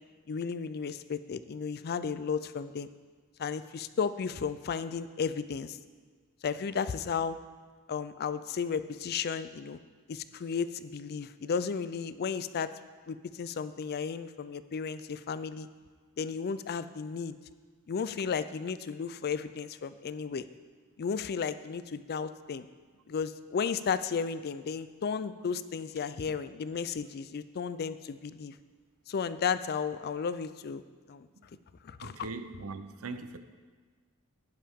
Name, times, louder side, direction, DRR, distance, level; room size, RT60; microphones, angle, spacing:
voice 1, 0.3-2.9 3.4-5.8 6.4-7.4 7.9-9.8 10.1-12.7 13.1-15.7 16.2-17.3 17.9-20.5 21.0-22.7 23.1-28.6 29.1-30.8 31.1-31.3 31.8-32.2, left 6 dB, 45° left, 13 dB, 0.4 m, -34 dB
voice 2, 32.0-33.4, right 3 dB, 70° right, 10 dB, 0.7 m, -40 dB
11.5 x 10.5 x 3.6 m, 1.5 s
head